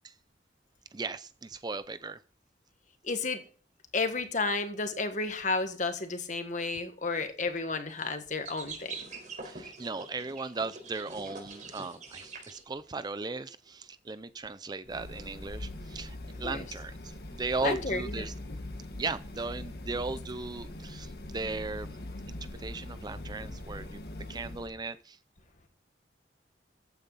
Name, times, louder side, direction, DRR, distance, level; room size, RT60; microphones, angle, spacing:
voice 1, 0.9-2.2 9.4-17.0 17.3-18.3 18.9-22.0 22.3-24.0 24.3-25.2, right 3 dB, 25° right, 0.5 m, -37 dB
voice 2, 3.0-3.4 3.9-9.0 16.4-16.6 17.6-18.3, left 3 dB, 45° left, 1.6 m, -32 dB
sound 1, 7.9-8.1 8.4-12.6, right 4 dB, 45° right, 4.7 m, -44 dB
sound 2, 14.9-24.7, left 1 dB, 60° left, 1.6 m, -42 dB
15.0 x 9.1 x 4.1 m
head